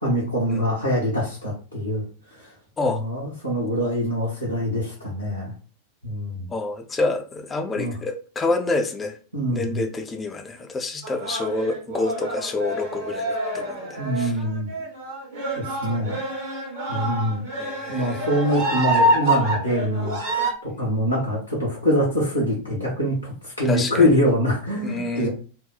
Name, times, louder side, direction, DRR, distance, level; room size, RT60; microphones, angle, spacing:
voice 1, 0.0-2.0 2.3-2.5 2.8-5.5 6.0-6.5 7.7-7.9 9.3-9.8 14.0-14.7 15.5-16.2 16.9-17.4 17.9-20.2 20.6-25.3, equal, 90° right, 1.1 m, -24 dB
voice 2, 6.5-9.2 9.5-14.3 17.6-18.3 23.7-24.1 24.8-25.3, left 3 dB, 15° left, 0.4 m, -28 dB
sound 1, 11.0-20.5, right 1 dB, 55° right, 1.3 m, -27 dB
2.7 x 2.0 x 3.9 m
figure-of-eight pair, 90°, 0 cm